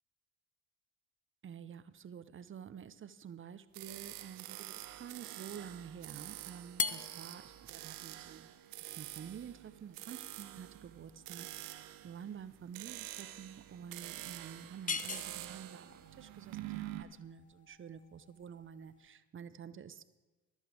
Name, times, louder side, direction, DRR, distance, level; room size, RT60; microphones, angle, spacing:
voice 1, 1.4-8.5 8.9-20.0, right 8 dB, 30° right, 15 dB, 0.9 m, -49 dB
sound 1, 3.7-17.0, right 15 dB, 65° right, 1.0 m, -47 dB
sound 2, 6.7-19.1, left 5 dB, 20° left, 0.6 m, -44 dB
24.5 x 8.3 x 3.5 m, 1.2 s
figure-of-eight pair, 50°, 38 cm